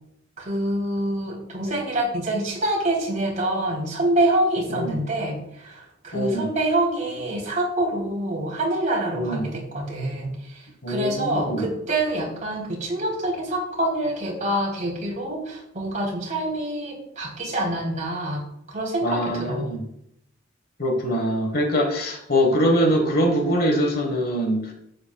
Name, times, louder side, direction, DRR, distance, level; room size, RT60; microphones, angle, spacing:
voice 1, 0.4-18.4 18.7-19.7, right 1 dB, 40° right, -3 dB, 3.3 m, -26 dB
voice 2, 4.7-5.0 6.1-6.5 9.1-9.5 10.8-11.7 19.0-19.9 20.8-24.7, equal, 45° left, 2 dB, 1.4 m, -23 dB
11.5 x 8.5 x 2.3 m, 0.77 s
head